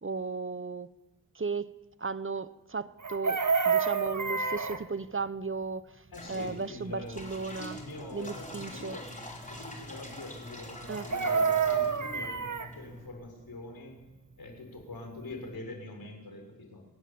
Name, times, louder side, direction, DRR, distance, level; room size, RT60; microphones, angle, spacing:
voice 1, 0.0-0.9 1.3-6.0 6.3-7.8 8.1-9.0 10.9-11.1, right 4 dB, 35° right, 1.1 m, -35 dB
Chicken rooster, 3.0-4.8 10.9-12.7 14.9-15.0 15.3-15.6, right 5 dB, 55° right, 2.0 m, -28 dB
voice 2, 6.1-7.2 7.6-9.1 9.5-12.4 12.7-14.0 14.4-16.8, left 2 dB, 75° left, 6.7 m, -44 dB
sound 1, 6.1-13.1, left 1 dB, 20° left, 5.3 m, -45 dB
26.0 x 20.0 x 8.8 m
wide cardioid pair, 65°, 36 cm